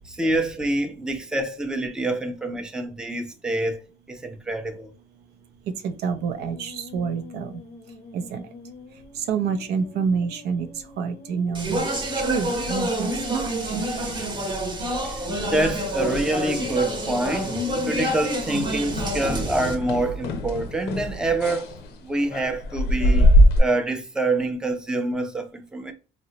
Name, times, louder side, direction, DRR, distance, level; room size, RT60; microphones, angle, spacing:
voice 1, 0.0-3.8 4.1-4.9 15.0-17.5 17.9-23.3 23.6-25.9, right 2 dB, 5° right, 0.5 m, -26 dB
voice 2, 5.7-7.6 8.1-8.5 9.1-10.7 11.0-11.9 12.1-14.1, right 6 dB, 75° right, 0.5 m, -28 dB
Musical instrument, 6.1-19.1, left 5 dB, 45° left, 0.6 m, -44 dB
Speech, 11.5-19.7, right 1 dB, 25° right, 0.9 m, -28 dB
sound 1, 15.5-17.0 17.2-17.6 17.9-18.1 18.5-23.6, equal, 90° left, 0.6 m, -23 dB
3.6 x 2.1 x 2.8 m
cardioid pair, 110°, 17 cm